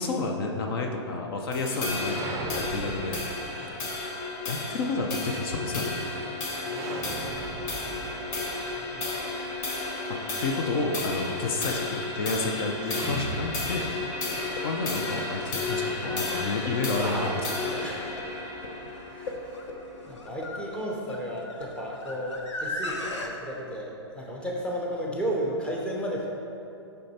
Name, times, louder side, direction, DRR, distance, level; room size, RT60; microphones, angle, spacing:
voice 1, 0.0-3.3 4.5-6.0 10.1-13.9 14.6-17.7, left 3 dB, 55° left, 2 dB, 0.7 m, -30 dB
sound 1, 1.5-20.1, left 2 dB, 40° left, 1.2 m, -33 dB
sound 2, 2.0-4.0 6.7-9.7 12.8-14.2 14.5-14.6 16.8-18.6, right 4 dB, 20° right, 0.5 m, -39 dB
voice 2, 6.6-7.5 8.8-9.1 9.6-9.7 14.2-14.5 17.8-18.1 19.1-19.4 20.1-26.3, equal, 5° left, -3 dB, 0.9 m, -34 dB
sound 3, 14.5-23.3, left 2 dB, 85° left, 0.9 m, -39 dB
6.4 x 5.5 x 4.3 m, 2.7 s
hypercardioid pair, 140°, 15 cm